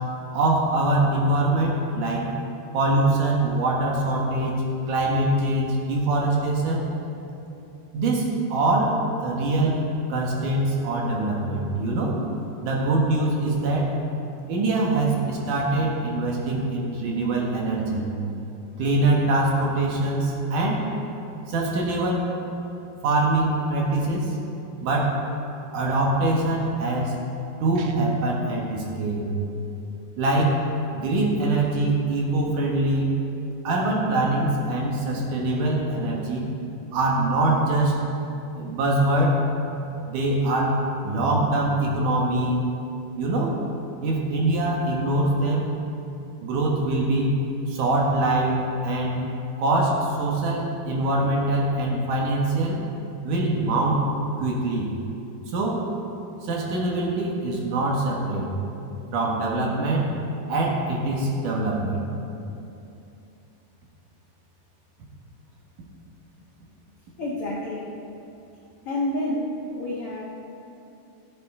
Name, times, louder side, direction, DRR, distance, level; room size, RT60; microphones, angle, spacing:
voice 1, 0.3-2.3 2.7-4.6 4.9-6.9 7.9-9.8 10.1-12.2 12.6-14.0 14.5-18.1 18.8-20.8 21.5-22.3 23.0-24.4 24.8-25.2 25.7-27.1 27.6-29.3 30.2-30.6 30.9-33.2 33.6-36.5 36.9-38.0 38.5-39.4 40.1-42.7 43.2-43.5 44.0-45.7 46.4-47.3 47.7-49.2 49.6-52.8 53.2-54.1 54.4-54.9 55.5-55.9 56.4-58.5 59.1-60.2 60.5-62.0, right 2 dB, 65° right, -2 dB, 2.4 m, -23 dB
Guitar, 27.8-28.6, right 5 dB, 90° right, 1.8 m, -30 dB
voice 2, 67.2-68.0 68.8-70.2, left 1 dB, 85° left, -5 dB, 1.2 m, -29 dB
16.0 x 8.5 x 3.6 m, 2.8 s
omnidirectional pair, 4.5 m